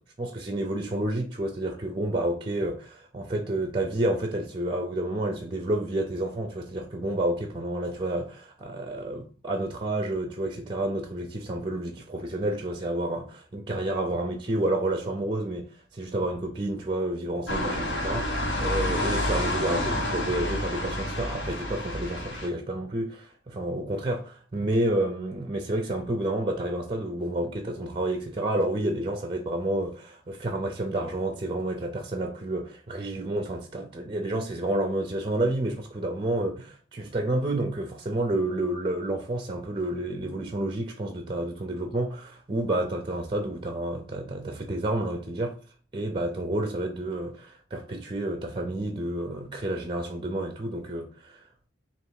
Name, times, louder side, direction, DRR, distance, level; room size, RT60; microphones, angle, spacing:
voice 1, 0.2-15.7 15.9-45.6 45.9-51.4, right 1 dB, 25° right, 0.5 m, -30 dB
sound 1, 17.5-22.5, left 1 dB, 85° left, 1.8 m, -29 dB
3.2 x 2.9 x 4.7 m
head